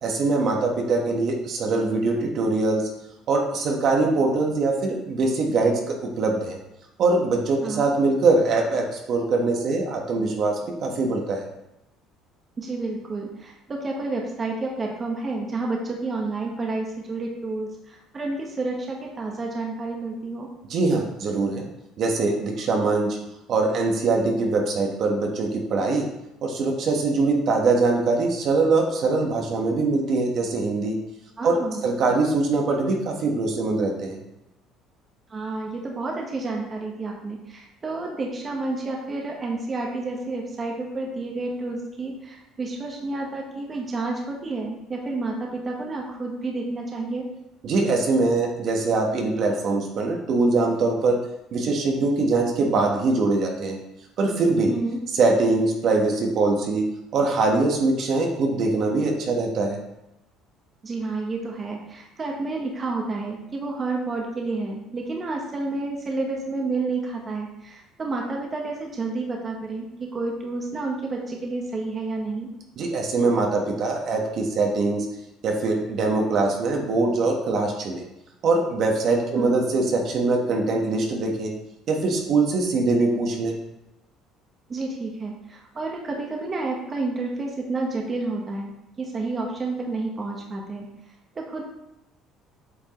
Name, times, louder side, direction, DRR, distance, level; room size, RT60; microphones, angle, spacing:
voice 1, 0.0-2.8 3.3-6.6 7.0-11.4 20.7-21.7 22.0-23.2 23.5-26.1 26.4-30.9 31.4-34.2 47.6-51.2 51.5-53.8 54.2-54.7 55.1-56.9 57.1-59.8 72.8-75.1 75.4-78.0 78.4-81.5 81.9-83.5, right 3 dB, 55° right, 1 dB, 1.4 m, -22 dB
voice 2, 12.6-20.5 31.4-31.9 35.3-47.2 54.7-55.0 60.8-72.5 79.4-79.6 84.7-90.9 91.3-91.6, right 3 dB, 30° right, 0 dB, 1.3 m, -30 dB
8.2 x 5.2 x 3.2 m, 0.91 s
supercardioid pair, 95°, 0 cm